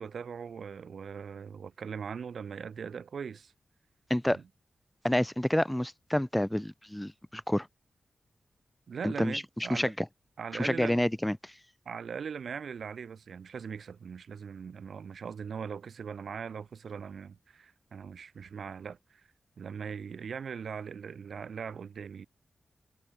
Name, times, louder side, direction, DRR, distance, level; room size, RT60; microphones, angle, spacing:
voice 1, 0.0-3.5 4.3-4.4 8.9-9.9 10.4-11.0 11.8-19.3 19.6-22.3, right 6 dB, 75° right, 1.5 m, -40 dB
voice 2, 5.0-7.7 9.0-10.0 10.6-11.5, left 1 dB, 5° left, 1.6 m, -29 dB
wide cardioid pair, 100°, 0 cm